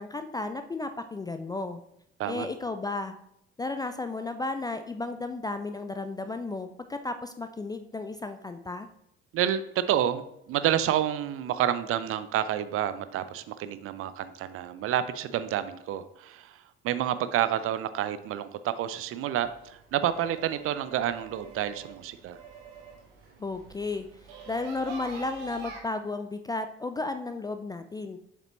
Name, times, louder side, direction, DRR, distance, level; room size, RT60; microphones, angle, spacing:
voice 1, 0.0-1.8 2.3-3.1 3.6-8.9 23.4-24.1 24.5-28.2, left 3 dB, 15° left, 8 dB, 0.3 m, -33 dB
voice 2, 9.3-10.2 10.5-16.6 16.8-22.4, right 11 dB, 45° right, 13 dB, 0.5 m, -29 dB
sound 1, 19.4-25.8, right 3 dB, 65° right, 1.3 m, -46 dB
7.3 x 5.1 x 3.1 m, 0.75 s
figure-of-eight pair, 50°, 32 cm